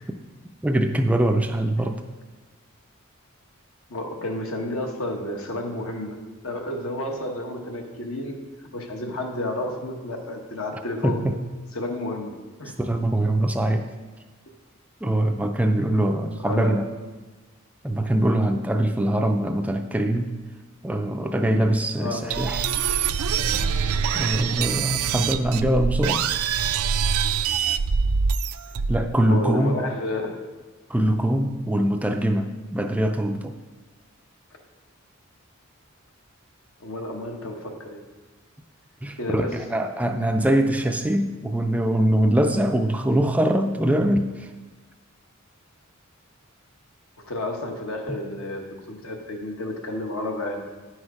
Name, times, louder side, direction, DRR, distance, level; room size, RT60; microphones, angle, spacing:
voice 1, 0.6-2.0 11.0-11.4 12.8-13.9 15.0-16.9 17.8-20.4 20.8-23.0 24.1-26.3 28.8-29.8 30.9-33.5 39.0-44.5 48.1-48.2, right 1 dB, 5° right, 5 dB, 0.3 m, -23 dB
voice 2, 3.9-11.2 11.7-12.8 16.4-16.8 22.0-22.3 29.3-30.4 36.8-38.0 39.1-39.6 47.3-50.6, left 1 dB, 75° left, 2 dB, 1.2 m, -31 dB
sound 1, 22.3-29.1, right 6 dB, 85° right, 0.4 m, -24 dB
9.6 x 6.3 x 4.8 m, 1.3 s
head